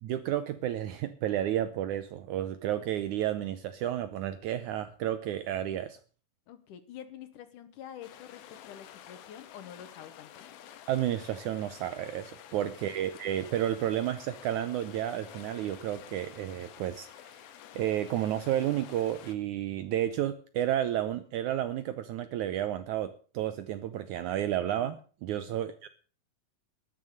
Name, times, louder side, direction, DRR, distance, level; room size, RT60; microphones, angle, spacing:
voice 1, 0.0-6.0 10.9-17.4 17.8-25.0 25.2-25.9, right 11 dB, 75° right, 12 dB, 1.8 m, -31 dB
voice 2, 6.5-10.4 12.5-12.6 25.3-25.6, left 10 dB, 70° left, 11 dB, 2.5 m, -47 dB
sound 1, 8.0-19.4, left 10 dB, 85° left, 3.0 m, -50 dB
12.5 x 10.0 x 6.5 m, 0.40 s
omnidirectional pair, 4.2 m